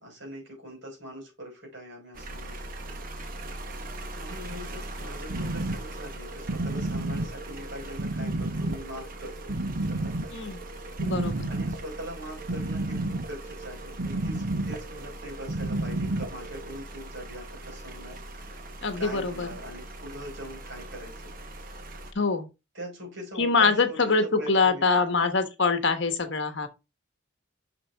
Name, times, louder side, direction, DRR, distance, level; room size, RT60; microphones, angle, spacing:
voice 1, 0.0-2.9 4.2-10.2 11.5-21.3 22.7-25.0, equal, 60° right, 4.7 m, -42 dB
sound 1, 2.1-22.1, right 1 dB, 40° right, 1.0 m, -41 dB
sound 2, 5.3-16.7, right 2 dB, 85° right, 1.0 m, -31 dB
voice 2, 10.3-10.6 11.0-11.5 18.8-19.5 22.1-22.5 23.4-26.7, left 4 dB, 60° left, 1.2 m, -24 dB
6.8 x 6.2 x 3.5 m
head